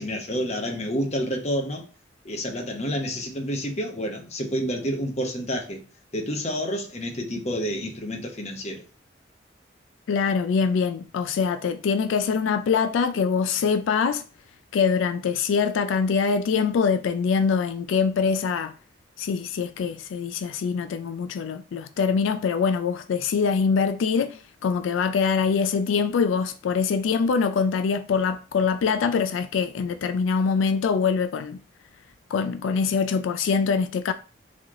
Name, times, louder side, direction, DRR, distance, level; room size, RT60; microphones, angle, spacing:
voice 1, 0.0-1.8 2.2-5.8 6.1-8.8, equal, 35° left, 0.8 m, -29 dB
voice 2, 10.1-14.2 14.7-18.7 19.2-31.6 32.3-34.1, left 5 dB, 90° left, 0.3 m, -24 dB
4.2 x 3.0 x 3.6 m
head